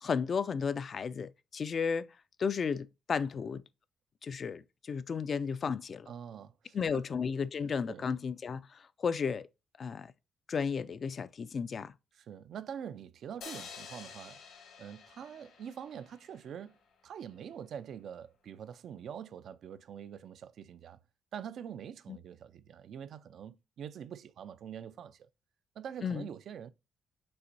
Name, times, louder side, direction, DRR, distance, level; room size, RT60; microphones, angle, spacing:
voice 1, 0.0-2.1 2.4-3.6 4.2-6.1 6.7-9.5 9.8-10.1 10.5-11.9 22.1-22.2 26.0-26.2, left 6 dB, 45° left, 0.4 m, -33 dB
voice 2, 6.1-7.0 7.9-8.1 12.1-14.4 14.8-16.8 17.0-21.0 21.3-25.3 25.8-26.7, right 8 dB, 65° right, 0.4 m, -45 dB
sound 1, 13.4-16.7, left 6 dB, 80° left, 1.9 m, -49 dB
5.5 x 3.3 x 2.5 m
cardioid pair, 90°, 0 cm